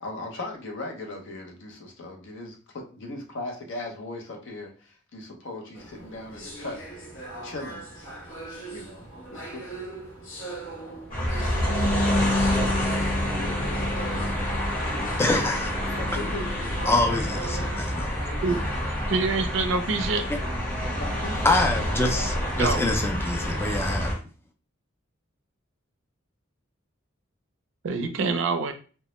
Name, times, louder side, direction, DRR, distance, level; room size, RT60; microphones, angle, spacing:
voice 1, 0.0-6.8 7.4-7.9 8.7-9.9 10.8-11.1 11.8-14.5 14.9-15.6 16.0-16.9 17.5-17.7 20.9-21.6 22.2-22.3 22.6-22.9, left 2 dB, 65° left, 0.6 m, -39 dB
sound 1, 5.7-18.9, right 2 dB, 90° left, 0.9 m, -41 dB
sound 2, 11.1-24.1, left 1 dB, 45° left, 1.0 m, -27 dB
voice 2, 15.2-15.7 16.9-18.2 21.4-24.2, left 2 dB, 10° left, 0.3 m, -25 dB
voice 3, 19.1-20.2 22.6-23.0 27.8-28.7, right 4 dB, 65° right, 0.4 m, -25 dB
2.1 x 2.0 x 2.9 m
head